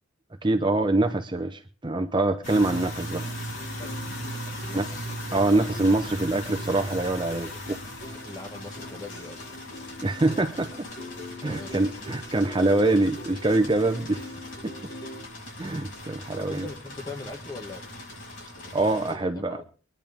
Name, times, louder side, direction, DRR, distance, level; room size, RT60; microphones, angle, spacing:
voice 1, 0.4-3.3 4.7-4.9 5.3-7.8 10.0-10.9 11.4-14.3 14.6-14.7 15.6-16.6 18.7-19.6, right 2 dB, 25° right, 0.6 m, -24 dB
sound 1, 2.4-19.1, equal, 80° left, 6.1 m, -38 dB
sound 2, 2.8-15.3, left 2 dB, 55° left, 2.4 m, -44 dB
voice 2, 4.5-5.1 8.0-9.5 11.4-11.8 16.4-17.8 18.6-19.7, left 2 dB, 20° left, 1.9 m, -41 dB
23.5 x 10.5 x 3.6 m
head